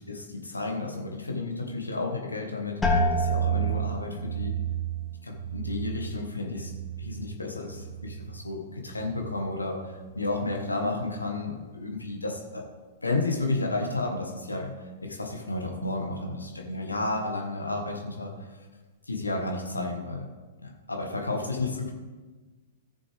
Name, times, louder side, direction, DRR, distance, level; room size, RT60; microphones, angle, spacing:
voice 1, 0.0-4.6 5.2-6.7 7.0-12.7 13.0-18.3 19.1-20.3 20.6-21.9, left 2 dB, 85° left, 2 dB, 1.5 m, -32 dB
sound 1, 2.8-8.5 8.8-9.5 10.0-10.4, right 3 dB, 10° left, 1.8 m, -30 dB
14.5 x 6.8 x 3.5 m, 1.3 s
figure-of-eight pair, 105°, 0 cm